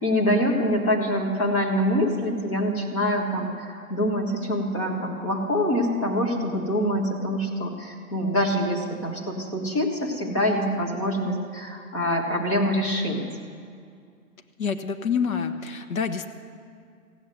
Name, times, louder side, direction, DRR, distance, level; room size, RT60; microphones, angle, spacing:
voice 1, 0.0-13.2, equal, 20° left, -2 dB, 1.5 m, -25 dB
voice 2, 14.6-16.3, left 6 dB, 70° left, 6 dB, 1.2 m, -27 dB
15.5 x 7.2 x 9.2 m, 2.2 s
hypercardioid pair, 170°, 44 cm